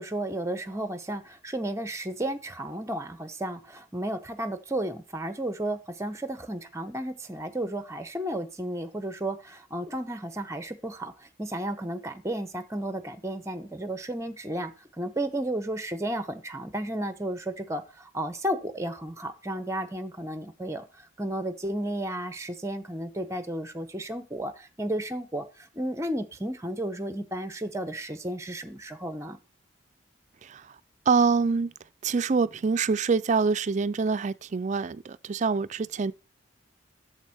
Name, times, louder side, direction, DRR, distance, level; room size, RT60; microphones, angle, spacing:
voice 1, 0.0-14.7 15.0-29.4, right 1 dB, 15° right, 0.8 m, -33 dB
voice 2, 30.4-30.7 31.1-31.7 32.0-36.1, right 5 dB, 40° right, 0.4 m, -25 dB
8.2 x 7.0 x 4.2 m
head